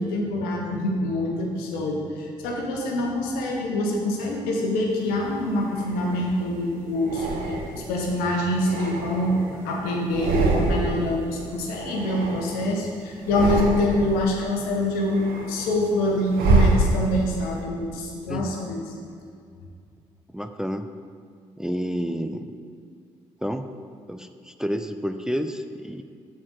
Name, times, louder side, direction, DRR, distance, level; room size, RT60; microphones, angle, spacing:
voice 1, 0.0-18.8, left 1 dB, 75° left, 0 dB, 1.2 m, -25 dB
sound 1, 5.1-6.4 7.0-8.0 8.4-9.7 10.0-11.1 11.4-12.8 13.2-14.2 14.7-17.4, right 3 dB, 70° right, 1.0 m, -26 dB
voice 2, 20.3-20.9 21.6-22.5 23.4-23.7 24.1-26.0, equal, 5° right, 8 dB, 0.5 m, -29 dB
7.2 x 4.4 x 6.6 m, 2.3 s
hypercardioid pair, 40°, 15 cm